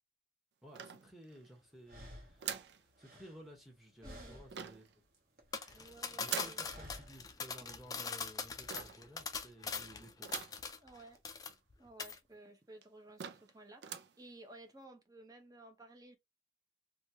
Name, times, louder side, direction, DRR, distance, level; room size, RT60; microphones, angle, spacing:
voice 1, 0.6-4.9 6.1-10.5, equal, ahead, 1.0 m, -56 dB
sound 1, 0.7-1.5 2.4-2.8 4.5-4.9 6.3-6.7 8.7-9.1 10.2-10.7 11.1-11.2 11.5-11.6 12.3-12.4 12.8-12.9 13.2-13.5 13.8-14.2, right 8 dB, 70° right, 0.4 m, -43 dB
sound 2, 1.3-1.4 1.8-3.8 4.0-4.7 5.0-6.0 6.7-7.3, equal, 50° right, 1.0 m, -53 dB
voice 2, 4.0-4.4 5.8-6.8 7.6-7.8 10.8-11.2 11.8-16.2, right 2 dB, 20° right, 0.7 m, -56 dB
sound 3, 5.5-11.0 11.2-11.7 12.0-12.2, left 5 dB, 20° left, 0.3 m, -42 dB
3.1 x 2.3 x 2.7 m
head